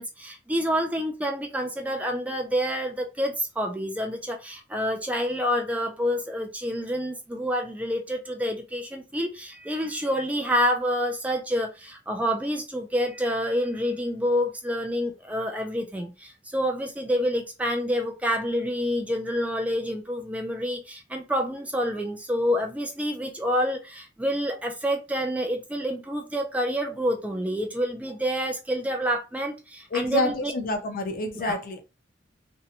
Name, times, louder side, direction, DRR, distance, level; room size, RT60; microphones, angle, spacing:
voice 1, 0.0-30.5 31.4-31.6, equal, 10° right, 0.3 m, -28 dB
voice 2, 29.9-31.8, left 3 dB, 50° left, 0.5 m, -28 dB
2.6 x 2.1 x 2.8 m
head